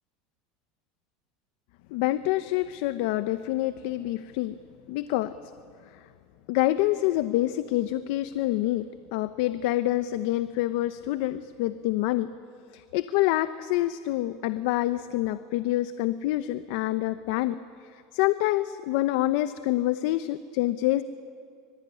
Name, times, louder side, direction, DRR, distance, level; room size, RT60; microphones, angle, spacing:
voice 1, 1.9-4.6 4.9-5.5 5.9-6.1 6.5-8.9 9.1-12.3 12.7-21.0, left 15 dB, 65° left, 12 dB, 0.8 m, -27 dB
25.0 x 24.0 x 9.9 m, 2.4 s
supercardioid pair, 155°, 0 cm